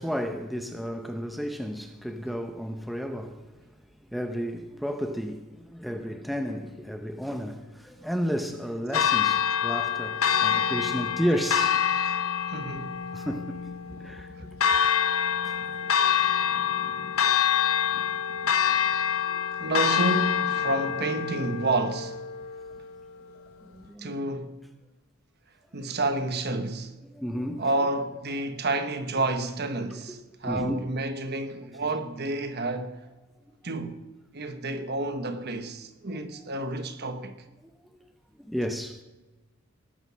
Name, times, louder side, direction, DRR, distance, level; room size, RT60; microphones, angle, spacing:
voice 1, 0.0-3.6 4.1-11.8 13.1-13.6 13.9-14.5 15.4-15.6 15.8-15.9 18.0-18.1 19.3-19.4 23.6-24.1 27.1-27.7 30.4-30.9 36.1-36.5 37.0-37.1 38.4-39.0, equal, ahead, 0.8 m, -32 dB
Church bell, 8.9-22.9, left 8 dB, 70° left, 1.3 m, -26 dB
voice 2, 12.5-13.0 19.5-22.2 24.0-24.6 25.7-27.0 27.6-33.0 33.6-34.0 34.3-37.3, right 2 dB, 50° right, 1.2 m, -30 dB
19.0 x 8.9 x 6.2 m
head